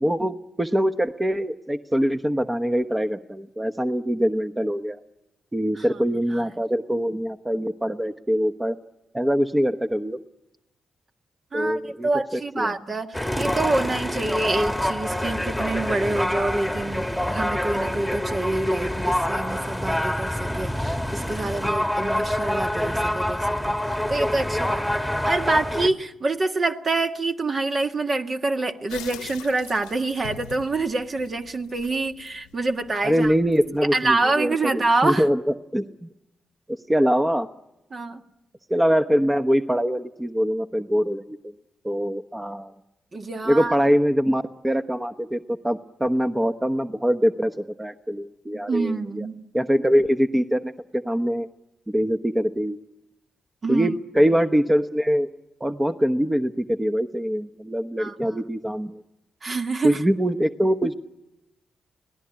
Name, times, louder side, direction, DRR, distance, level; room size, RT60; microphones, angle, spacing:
voice 1, 0.0-5.0 5.5-8.7 9.1-10.2 11.5-12.7 33.0-36.1 36.9-37.5 38.7-41.4 41.8-42.7 43.4-49.3 49.5-51.5 51.9-52.8 53.7-55.3 55.6-59.0 59.8-60.9, equal, 20° right, 7 dB, 1.1 m, -23 dB
voice 2, 11.5-23.8 24.1-33.3 33.9-35.3 37.9-38.2 43.1-43.8 48.7-49.4 53.6-54.3 58.0-58.4 59.4-60.0, right 2 dB, 50° right, 6 dB, 1.8 m, -26 dB
sound 1, 13.1-25.9, left 1 dB, ahead, 1.9 m, -26 dB
sound 2, 28.9-34.0, left 11 dB, 90° left, 0.9 m, -44 dB
25.5 x 18.0 x 10.0 m, 0.94 s
hypercardioid pair, 40°, 0 cm